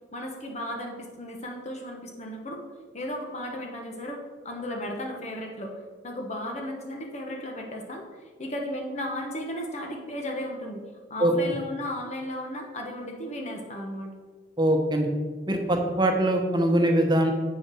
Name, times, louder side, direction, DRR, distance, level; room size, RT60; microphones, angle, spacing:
voice 1, 0.1-2.6 2.9-5.8 6.0-8.0 8.4-10.8 11.1-14.1, left 1 dB, 40° left, 1 dB, 1.1 m, -35 dB
voice 2, 14.6-15.1 15.5-17.3, right 1 dB, 25° right, 3 dB, 1.1 m, -22 dB
7.9 x 6.1 x 6.2 m, 1.5 s
head